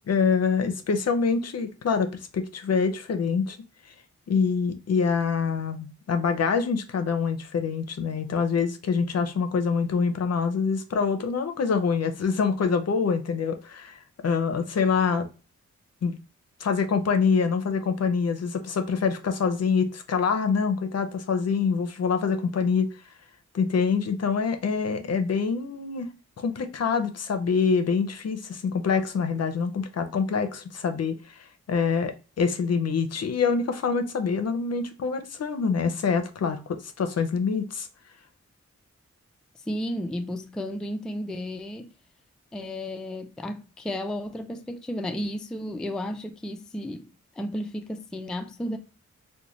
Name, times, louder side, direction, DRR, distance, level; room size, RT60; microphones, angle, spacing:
voice 1, 0.1-3.6 4.3-15.3 16.0-16.1 16.6-22.9 23.5-26.1 26.4-31.4 31.7-37.9, left 5 dB, 60° left, 0.5 m, -25 dB
voice 2, 39.7-41.9 42.5-47.1 47.4-48.8, left 1 dB, 5° left, 0.3 m, -33 dB
3.9 x 2.2 x 3.0 m
wide cardioid pair, 85°, 29 cm